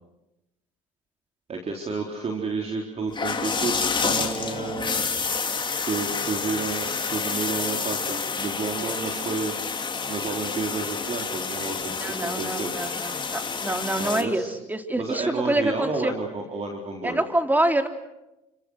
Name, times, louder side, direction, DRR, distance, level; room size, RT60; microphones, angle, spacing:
voice 1, 1.5-3.8 4.0-5.0 5.8-9.5 10.1-12.9 14.0-14.5 15.0-17.2, right 4 dB, 40° right, 1 dB, 4.0 m, -31 dB
sound 1, 3.1-14.2, left 5 dB, 30° left, 3.6 m, -29 dB
voice 2, 12.0-16.1 17.0-17.9, right 1 dB, 10° right, 6 dB, 3.2 m, -26 dB
30.0 x 26.0 x 6.5 m, 0.97 s
supercardioid pair, 75°, 17 cm